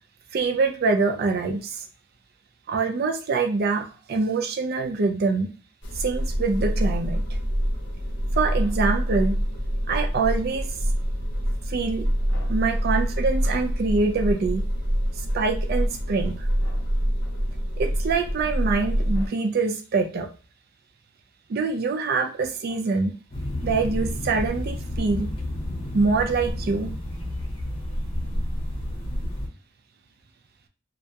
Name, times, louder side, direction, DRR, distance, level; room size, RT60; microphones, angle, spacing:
voice 1, 0.3-1.8 2.7-5.5 5.9-7.2 8.4-9.4 9.9-10.7 11.7-12.1 12.5-14.6 15.2-16.5 17.8-20.3 21.5-23.2 23.6-25.3 25.9-26.9, right 4 dB, 55° right, 4 dB, 0.4 m, -25 dB
sound 1, 5.8-19.3, equal, 75° left, 0.6 m, -26 dB
sound 2, 23.3-29.5, left 1 dB, 30° left, 0.7 m, -30 dB
2.2 x 2.0 x 2.7 m, 0.38 s
head